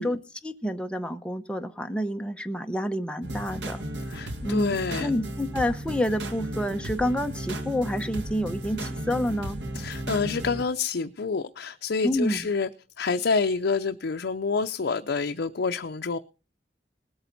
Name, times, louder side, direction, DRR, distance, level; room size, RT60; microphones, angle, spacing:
voice 1, 0.0-3.8 4.4-9.6 12.0-12.5, equal, 5° left, 0.8 m, -29 dB
sound 1, 3.2-10.6, right 1 dB, 85° right, 1.5 m, -34 dB
voice 2, 4.1-5.1 9.8-12.7 13.0-16.2, left 4 dB, 70° left, 0.5 m, -28 dB
19.5 x 8.7 x 4.0 m
head